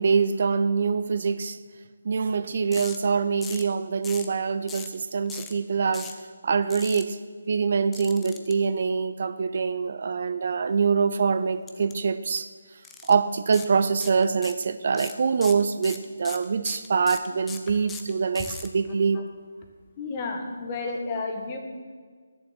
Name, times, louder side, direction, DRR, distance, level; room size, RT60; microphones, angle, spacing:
voice 1, 0.0-1.6 2.0-6.1 6.4-7.2 7.5-12.5 13.0-19.2, right 5 dB, 50° right, 0.5 m, -24 dB
sound 1, 2.7-3.0 3.4-3.7 4.0-4.3 4.7-5.0 5.3-5.5 5.9-6.2 6.7-7.0 7.9-8.5 11.7-11.9 12.2-12.4 12.8-13.1 13.5-13.7 14.0-14.6 14.9-18.7, left 6 dB, 10° left, 0.7 m, -39 dB
voice 2, 20.0-21.6, left 3 dB, 25° left, 1.6 m, -32 dB
11.5 x 7.3 x 7.8 m
figure-of-eight pair, 150°, 0 cm